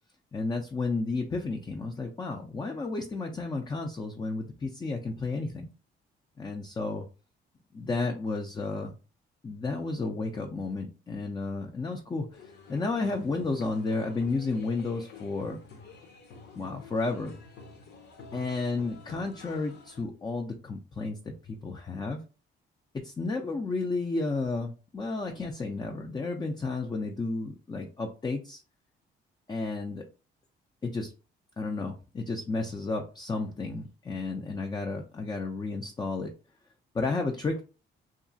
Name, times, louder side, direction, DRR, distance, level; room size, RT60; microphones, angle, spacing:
voice 1, 0.3-5.7 6.4-7.1 7.7-9.0 9.4-15.6 16.6-17.3 18.3-22.2 22.9-28.6 29.5-30.0 30.8-31.1 31.6-36.3 36.9-37.6, left 3 dB, 20° left, 2 dB, 0.4 m, -32 dB
sound 1, 12.3-20.0, left 4 dB, 60° left, 0.7 m, -49 dB
2.8 x 2.4 x 2.6 m, 0.34 s
cardioid pair, 90°, 20 cm